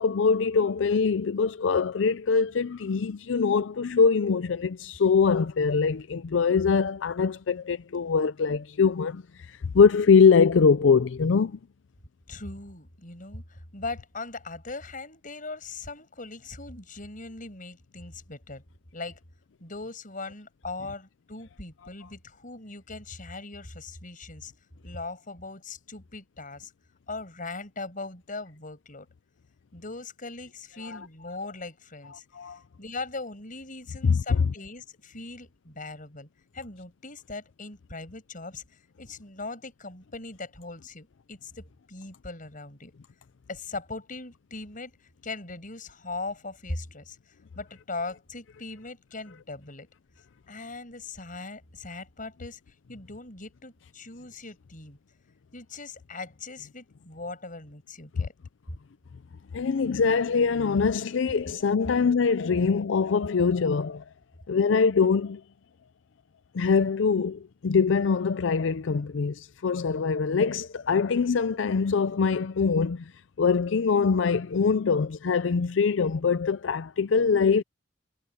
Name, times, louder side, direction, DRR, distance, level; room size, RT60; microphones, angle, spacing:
voice 1, 0.0-11.6 30.8-31.0 32.3-32.6 34.0-34.4 59.5-64.0 64.5-65.4 66.5-73.1 73.4-77.6, left 5 dB, 80° left, 0.5 m, -23 dB
voice 2, 12.3-18.6 18.9-19.2 19.6-24.5 24.8-26.7 27.1-29.1 29.7-36.3 36.5-42.9 43.5-49.9 50.5-55.0 55.5-58.3 58.7-58.8, left 3 dB, 45° left, 6.7 m, -40 dB
head